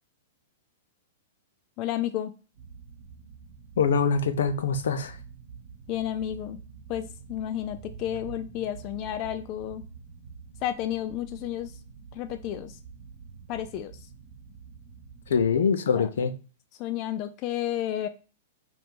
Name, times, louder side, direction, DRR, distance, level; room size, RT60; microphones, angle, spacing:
voice 1, 1.8-2.3 5.9-6.6 6.9-9.9 10.6-11.8 12.1-12.8 13.5-13.9 16.0-16.1 16.8-18.1, left 11 dB, 35° left, 8 dB, 0.4 m, -31 dB
sound 1, 2.5-15.7, right 6 dB, 50° right, 1.2 m, -47 dB
voice 2, 3.8-5.2 15.3-16.3, left 5 dB, 85° left, 9 dB, 0.7 m, -24 dB
5.6 x 2.6 x 3.5 m, 0.35 s
hypercardioid pair, 150°, 0 cm